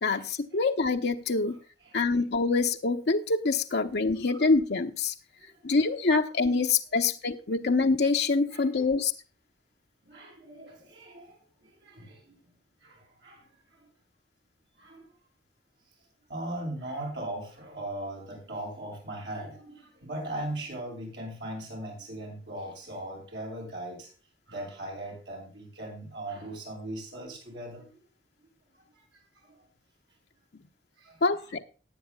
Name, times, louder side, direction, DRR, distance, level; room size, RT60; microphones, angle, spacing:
voice 1, 0.0-1.6 1.9-5.1 5.6-9.1 31.2-31.6, left 3 dB, 65° left, 4 dB, 0.8 m, -25 dB
voice 2, 8.5-8.8 10.0-12.4 12.8-13.4 14.8-15.0 16.3-24.1 24.5-28.0 29.5-29.6 31.0-31.2, right 1 dB, 70° right, 0 dB, 6.9 m, -39 dB
18.5 x 9.6 x 2.3 m, 0.35 s
head